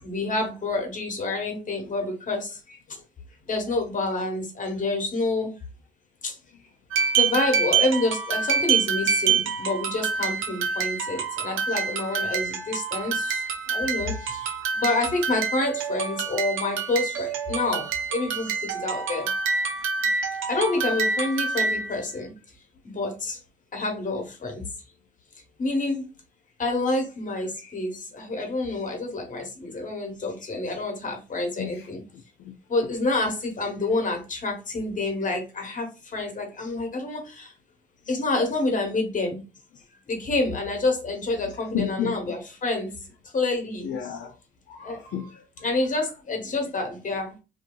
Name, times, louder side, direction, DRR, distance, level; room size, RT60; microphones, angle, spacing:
voice 1, 0.0-2.8 3.5-5.5 6.2-6.3 7.2-13.4 13.7-17.9 18.1-19.3 20.5-22.3 22.8-23.4 23.7-24.6 25.6-26.1 26.6-32.0 32.7-37.5 38.1-39.5 40.1-43.0 43.3-43.9 44.8-45.0 45.6-47.3, left 2 dB, 40° left, 1.2 m, -28 dB
sound 1, 6.9-22.0, right 6 dB, 85° right, 0.6 m, -27 dB
voice 2, 31.6-32.5 32.8-32.9 36.1-36.2 41.4-42.2 43.8-44.4 44.7-46.1, left 8 dB, 65° left, 0.5 m, -34 dB
2.7 x 2.7 x 2.2 m
cardioid pair, 90°, 20 cm